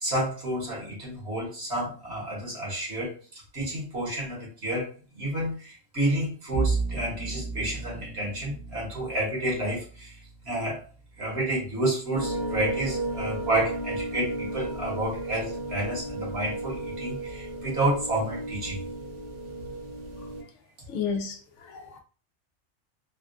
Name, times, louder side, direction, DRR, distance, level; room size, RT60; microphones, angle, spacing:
voice 1, 0.0-3.1 3.5-10.2 10.4-10.8 11.2-18.8, right 1 dB, 60° right, -3 dB, 1.6 m, -30 dB
Bowed string instrument, 6.5-11.6, right 4 dB, 20° right, 0.4 m, -34 dB
sound 1, 12.1-20.4, right 1 dB, 75° right, 1.0 m, -34 dB
voice 2, 20.9-22.0, left 6 dB, 80° left, 4 dB, 0.9 m, -32 dB
3.4 x 2.3 x 2.5 m, 0.38 s
omnidirectional pair, 1.2 m